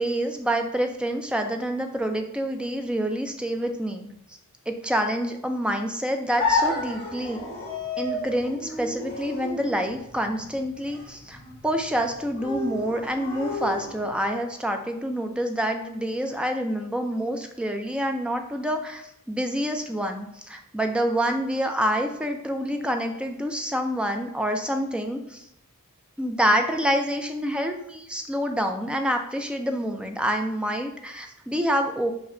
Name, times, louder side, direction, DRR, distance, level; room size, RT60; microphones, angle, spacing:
voice 1, 0.0-4.1 4.7-7.4 8.0-11.4 11.6-25.5 26.2-32.1, equal, 5° right, 5 dB, 0.4 m, -27 dB
sound 1, 6.4-14.3, left 3 dB, 50° left, 1.6 m, -32 dB
5.4 x 2.2 x 3.7 m, 0.75 s
head